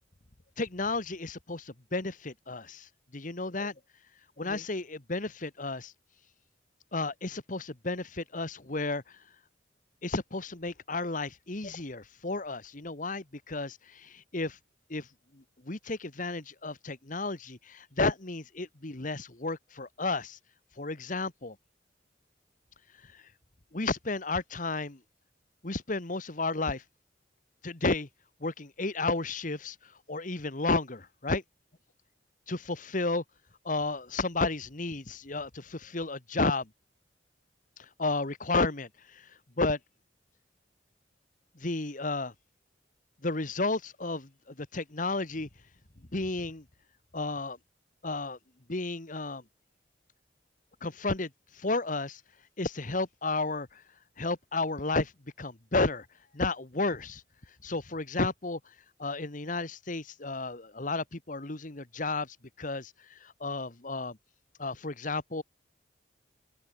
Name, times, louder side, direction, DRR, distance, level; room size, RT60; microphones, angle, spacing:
voice 1, 0.6-3.8 4.4-5.9 6.9-9.2 10.0-14.6 14.9-15.1 15.3-20.4 20.8-21.6 23.0-23.3 23.7-25.0 25.6-26.8 27.6-28.1 28.4-31.4 32.5-33.2 33.6-36.7 37.8-39.8 41.5-42.3 43.2-45.5 46.1-46.6 47.1-47.6 48.0-48.4 48.7-49.4 50.8-52.2 52.6-53.8 54.2-55.1 55.4-56.1 56.3-57.2 57.5-64.2 64.6-65.4, left 3 dB, 45° left, 1.6 m, -32 dB
open air
head